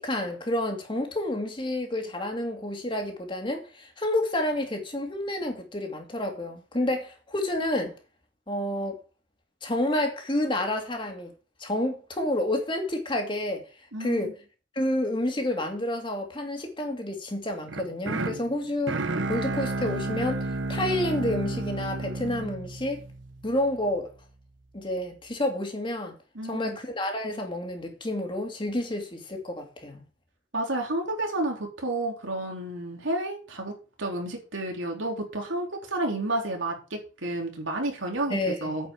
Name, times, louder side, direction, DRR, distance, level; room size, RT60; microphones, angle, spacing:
voice 1, 0.0-7.9 8.5-9.0 9.6-11.3 11.6-13.6 14.0-14.3 14.7-23.0 23.4-24.1 24.7-26.1 26.4-30.0 38.3-38.9, left 1 dB, 25° left, 2.6 m, -29 dB
voice 2, 13.9-14.3 26.4-26.8 30.5-33.7 34.0-38.9, right 1 dB, 90° right, 3.6 m, -31 dB
sound 1, 17.7-23.8, right 2 dB, 75° right, 1.1 m, -32 dB
9.3 x 5.9 x 7.7 m
head